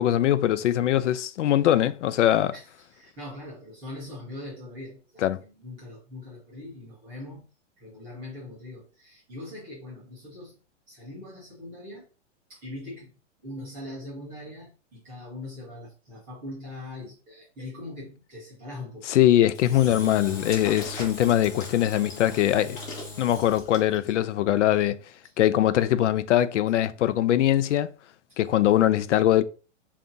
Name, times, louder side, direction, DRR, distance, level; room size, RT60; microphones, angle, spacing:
voice 1, 0.0-2.5 5.2-5.4 19.1-22.8 23.2-25.0 25.4-27.9 28.4-29.4, left 12 dB, 75° left, 0.5 m, -22 dB
voice 2, 2.5-7.4 7.8-10.6 10.9-12.0 12.5-13.1 13.4-19.1 19.7-19.8 28.3-28.4, left 2 dB, 5° right, 0.3 m, -41 dB
Engine / Drill, 19.5-24.1, left 2 dB, 40° left, 1.5 m, -38 dB
5.3 x 2.4 x 2.6 m
hypercardioid pair, 160°, 37 cm